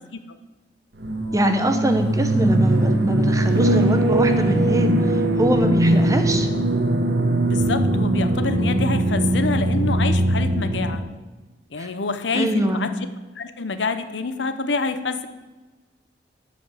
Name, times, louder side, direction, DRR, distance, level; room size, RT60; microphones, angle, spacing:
sound 1, 1.0-11.0, right 1 dB, 80° right, 1.4 m, -20 dB
voice 1, 1.3-6.5 11.8-11.9 12.3-12.9, equal, 20° right, 7 dB, 1.0 m, -23 dB
voice 2, 7.4-11.0 11.7-12.9 13.4-15.3, left 4 dB, 85° left, 10 dB, 0.8 m, -27 dB
12.0 x 5.2 x 7.4 m, 1.2 s
head